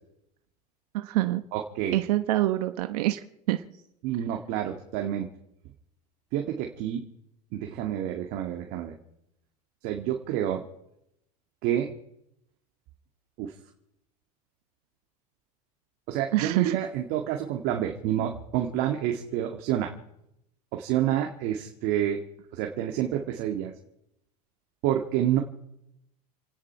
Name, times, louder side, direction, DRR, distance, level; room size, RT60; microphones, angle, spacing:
voice 1, 0.9-1.4 1.9-3.2 3.5-3.6 16.3-16.8, right 16 dB, 80° right, 8 dB, 1.1 m, -25 dB
voice 2, 1.5-2.0 4.0-5.3 6.3-7.0 7.5-8.9 9.8-10.7 11.6-11.9 13.4-13.5 16.1-19.9 20.7-22.2 22.5-23.7 24.8-25.4, right 11 dB, 60° right, 2 dB, 2.2 m, -28 dB
30.0 x 10.0 x 4.6 m, 0.79 s
supercardioid pair, 110°, 20 cm